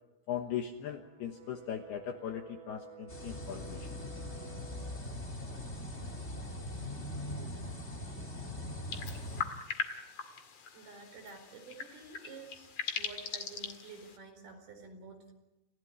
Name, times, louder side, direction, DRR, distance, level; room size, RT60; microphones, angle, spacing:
voice 1, 0.3-3.9, left 9 dB, 70° left, 5 dB, 2.6 m, -39 dB
Brass instrument, 0.8-5.0, right 8 dB, 85° right, 7.4 m, -52 dB
sound 1, 3.1-9.4, left 1 dB, 25° left, 1.6 m, -41 dB
sound 2, 8.9-14.2, left 6 dB, 50° left, 1.9 m, -40 dB
voice 2, 10.7-15.3, right 4 dB, 50° right, 5 dB, 5.9 m, -50 dB
29.5 x 16.0 x 10.0 m, 1.0 s
omnidirectional pair, 5.9 m